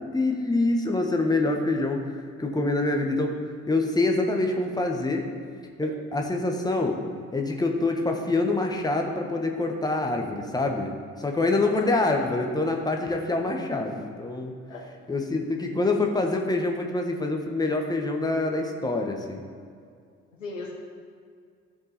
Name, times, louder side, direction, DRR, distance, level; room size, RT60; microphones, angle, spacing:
voice 1, 0.0-2.0 2.4-3.3 3.7-5.2 5.8-7.0 7.3-14.5 15.1-19.4, left 2 dB, 10° left, 2 dB, 1.3 m, -26 dB
voice 2, 11.7-12.1 14.7-14.8 20.4-20.7, left 3 dB, 85° left, -1 dB, 1.1 m, -37 dB
14.0 x 5.3 x 4.2 m, 2.2 s
figure-of-eight pair, 50°, 38 cm